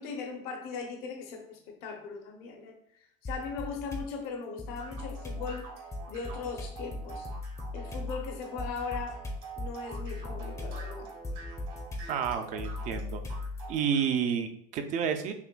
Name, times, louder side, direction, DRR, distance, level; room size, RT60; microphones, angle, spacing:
voice 1, 0.0-2.8 3.2-5.7 6.1-7.3 7.7-9.3 9.6-11.1, left 5 dB, 60° left, 3 dB, 0.7 m, -39 dB
sound 1, 3.2-4.1 4.6-13.8, left 2 dB, 15° left, 0.5 m, -38 dB
sound 2, 4.8-14.1, right 4 dB, 85° right, 1.5 m, -47 dB
voice 2, 12.1-13.2 13.7-15.3, right 7 dB, 45° right, 8 dB, 0.4 m, -30 dB
5.7 x 2.1 x 2.2 m, 0.69 s
supercardioid pair, 135°, 18 cm